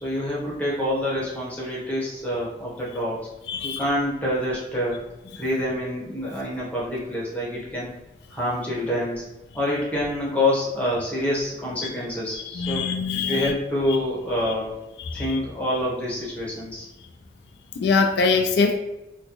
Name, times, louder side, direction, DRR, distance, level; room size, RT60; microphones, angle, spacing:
voice 1, 0.0-3.2 3.6-5.0 5.4-7.9 8.3-9.2 9.5-12.9 13.3-14.7 15.1-16.9, left 1 dB, 10° left, -6 dB, 0.9 m, -26 dB
voice 2, 3.5-3.8 12.5-13.5 13.9-14.0 14.5-14.6 15.0-15.4 17.8-18.8, left 4 dB, 75° left, 5 dB, 0.3 m, -23 dB
3.8 x 2.2 x 2.9 m, 0.99 s
head